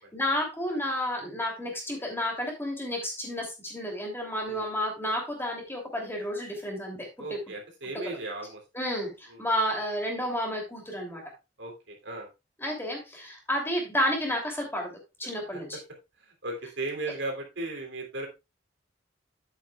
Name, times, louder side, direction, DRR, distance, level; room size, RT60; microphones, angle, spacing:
voice 1, 0.1-7.1 8.0-8.2 8.7-11.2 12.6-14.9 15.2-15.8, equal, 15° left, 1 dB, 3.0 m, -31 dB
voice 2, 7.2-8.6 9.3-9.4 11.6-12.3 16.2-18.3, right 2 dB, 75° right, 1 dB, 3.0 m, -36 dB
11.0 x 8.3 x 2.4 m, 0.25 s
head